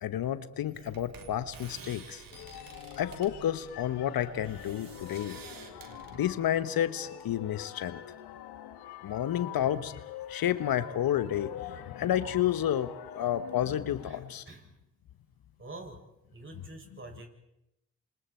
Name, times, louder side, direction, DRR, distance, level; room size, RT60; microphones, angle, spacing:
voice 1, 0.0-2.2 3.0-5.4 6.1-8.0 9.0-9.9 10.3-14.4, left 11 dB, 65° left, 13 dB, 1.2 m, -30 dB
sound 1, 0.5-6.7, right 5 dB, 60° right, 3.5 m, -50 dB
sound 2, 2.3-14.3, left 11 dB, 80° left, 1.8 m, -46 dB
voice 2, 14.0-14.6 15.6-16.0 16.3-17.3, right 2 dB, 30° right, 2 dB, 6.9 m, -46 dB
28.0 x 27.0 x 4.5 m, 0.86 s
hypercardioid pair, 45°, 38 cm